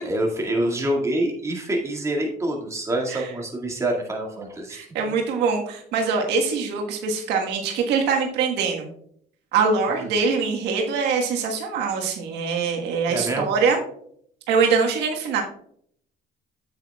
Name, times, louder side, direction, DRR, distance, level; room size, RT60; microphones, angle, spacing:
voice 1, 0.0-4.9 13.1-13.5, right 1 dB, 15° right, -1 dB, 2.0 m, -26 dB
voice 2, 4.7-8.9 9.5-13.8 14.5-15.4, right 5 dB, 85° right, 1 dB, 1.5 m, -23 dB
9.0 x 8.0 x 2.3 m, 0.65 s
cardioid pair, 110°, 17 cm